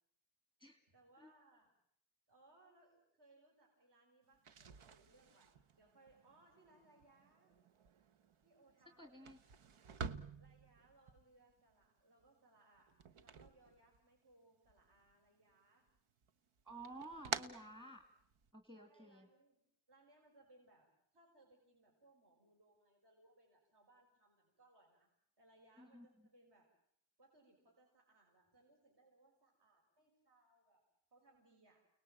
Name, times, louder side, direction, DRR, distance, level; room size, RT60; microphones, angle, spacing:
voice 1, 0.9-1.7 2.3-5.5 5.7-7.5 8.4-9.3 10.4-15.9 18.7-20.9 21.1-25.1 25.4-26.7 27.2-30.8 31.1-31.8, right 2 dB, 55° right, 0 dB, 5.6 m, -69 dB
sound 1, 4.3-14.3 14.6-15.5 15.9-18.5, right 6 dB, 90° right, 1.3 m, -50 dB
voice 2, 9.0-9.4 16.6-18.0 18.5-19.3 25.8-26.3, right 2 dB, 10° right, 6 dB, 2.2 m, -53 dB
30.0 x 19.5 x 9.0 m, 0.74 s
wide cardioid pair, 175°, 48 cm